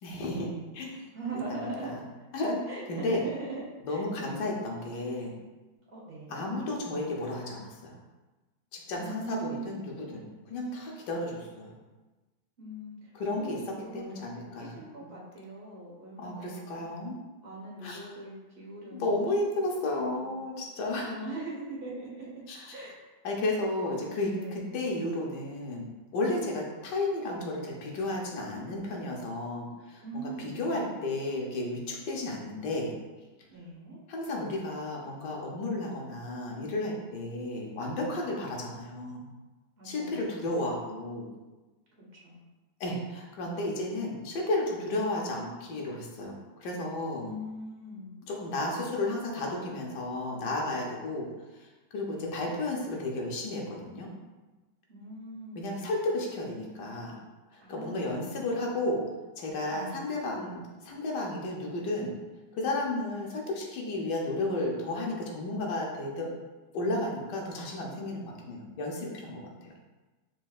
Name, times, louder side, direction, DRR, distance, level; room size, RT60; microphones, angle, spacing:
voice 1, 0.0-1.0 1.5-2.0 2.3-2.6 2.9-3.2 3.9-5.3 6.3-8.0 8.7-11.7 13.1-13.6 13.9-14.8 16.2-17.2 17.8-18.0 18.9-21.1 22.5-22.8 23.2-32.9 34.1-39.3 39.8-41.3 42.8-47.3 48.3-51.3 51.6-51.7 51.9-54.1 55.5-57.1 57.5-59.0 59.4-62.1 62.5-66.3 66.7-69.7, left 2 dB, 65° left, -1 dB, 1.4 m, -33 dB
voice 2, 1.1-1.9 2.7-4.3 5.9-6.4 9.0-9.8 12.6-16.9 17.4-19.4 19.9-20.4 21.0-22.3 22.7-23.0 23.9-24.6 30.0-30.9 33.5-34.0 39.8-40.3 42.0-42.5 47.2-48.1 52.0-52.5 54.9-55.7 57.6-58.7 59.7-60.1, right 2 dB, 35° right, -5 dB, 1.2 m, -41 dB
6.3 x 3.3 x 2.4 m, 1.2 s
omnidirectional pair, 2.1 m